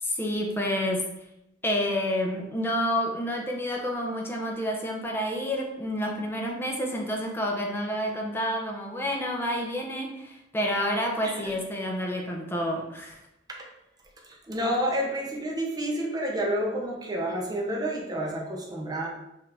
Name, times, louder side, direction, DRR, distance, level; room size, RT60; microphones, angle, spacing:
voice 1, 0.0-1.1 1.6-13.2, equal, 10° left, 0 dB, 0.7 m, -29 dB
voice 2, 14.5-19.1, equal, 20° right, -2 dB, 0.9 m, -29 dB
5.6 x 2.7 x 3.5 m, 0.84 s
head